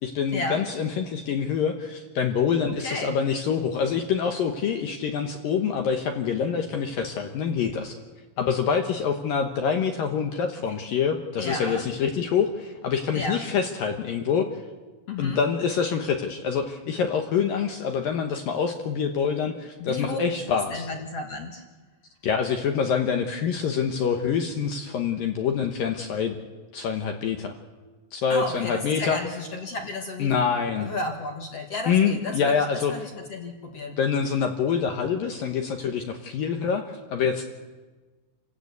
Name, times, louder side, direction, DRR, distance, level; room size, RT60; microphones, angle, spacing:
voice 1, 0.0-8.0 8.4-14.6 15.2-20.9 22.2-26.4 26.7-27.5 28.1-29.2 30.2-30.9 31.9-33.1 34.0-37.5, left 6 dB, 65° left, 5 dB, 2.3 m, -26 dB
voice 2, 2.8-3.2 11.4-11.9 13.1-13.4 15.1-15.4 19.8-20.2 20.5-21.6 28.3-30.3 30.8-32.6 32.9-33.9, left 2 dB, 50° left, 3 dB, 2.0 m, -32 dB
28.5 x 16.0 x 8.3 m, 1.3 s
omnidirectional pair, 5.4 m